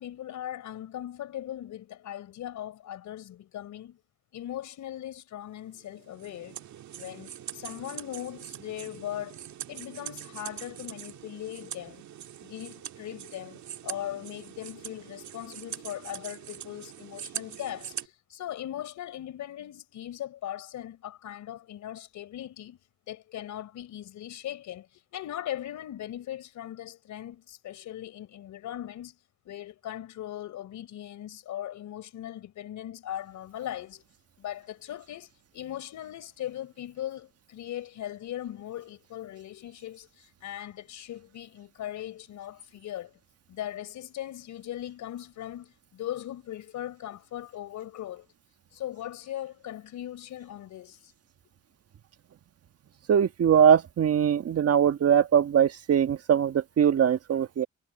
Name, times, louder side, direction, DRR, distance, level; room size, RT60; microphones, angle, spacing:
voice 1, 0.0-4.0 4.3-6.6 7.0-12.0 12.4-22.8 23.1-29.2 29.4-34.0 34.4-43.1 43.5-48.3 48.7-51.1, left 12 dB, 75° left, 4.7 m, -39 dB
sound 1, 5.7-18.1, right 10 dB, 70° right, 2.0 m, -42 dB
voice 2, 53.1-57.7, right 8 dB, 55° right, 1.5 m, -22 dB
cardioid pair, 90°, 30 cm